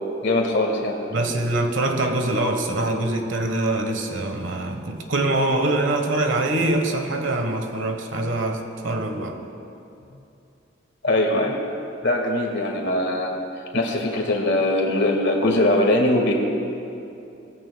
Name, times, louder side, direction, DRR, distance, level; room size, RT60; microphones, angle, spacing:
voice 1, 0.2-1.0 11.0-11.6 12.0-13.4 13.7-16.3, left 1 dB, 60° left, 1 dB, 1.7 m, -21 dB
voice 2, 1.1-9.4, right 2 dB, 75° right, 5 dB, 1.2 m, -24 dB
18.5 x 15.0 x 2.3 m, 2.7 s
head